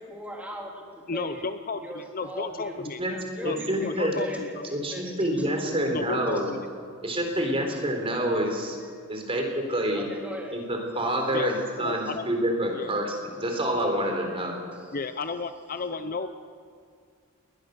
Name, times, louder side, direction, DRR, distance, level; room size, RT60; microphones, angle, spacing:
voice 1, 0.0-5.5 7.1-7.4 7.7-7.8 9.3-9.6 9.9-10.7 12.0-12.1 14.7-14.9, equal, 5° right, -1 dB, 3.5 m, -41 dB
voice 2, 1.1-3.0 3.4-4.7 5.9-6.7 11.3-11.5 11.8-12.3 12.7-12.9 14.9-16.3, left 4 dB, 40° left, 10 dB, 0.7 m, -33 dB
voice 3, 3.4-4.2 4.7-6.5 7.0-8.8 9.1-10.1 10.5-14.6, right 1 dB, 25° right, 2 dB, 3.9 m, -27 dB
21.0 x 20.5 x 6.8 m, 2.3 s
head